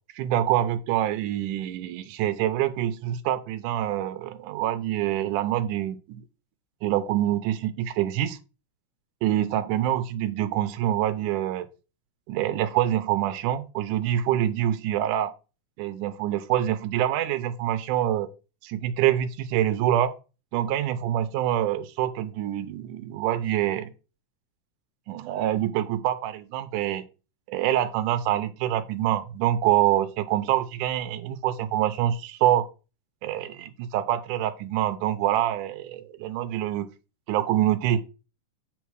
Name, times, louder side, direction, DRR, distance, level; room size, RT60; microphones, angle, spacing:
voice 1, 0.2-6.2 6.8-8.4 9.2-11.7 12.3-15.3 15.8-18.3 18.6-20.1 20.5-23.9 25.1-27.0 27.5-32.7 33.2-36.9 37.3-38.0, right 12 dB, 85° right, 13 dB, 2.2 m, -26 dB
8.3 x 3.8 x 4.7 m, 0.32 s
omnidirectional pair, 3.6 m